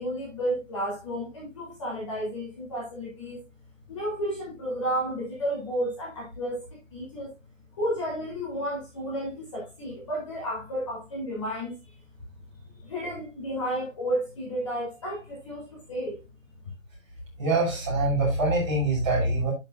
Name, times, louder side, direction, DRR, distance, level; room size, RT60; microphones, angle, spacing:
voice 1, 0.0-3.4 3.9-6.7 6.9-7.3 7.8-11.7 12.8-16.2, equal, 25° left, -6 dB, 3.8 m, -32 dB
voice 2, 17.4-19.5, right 2 dB, 20° right, -6 dB, 6.8 m, -24 dB
11.5 x 7.6 x 2.6 m, 0.25 s
hypercardioid pair, 175°, 40 cm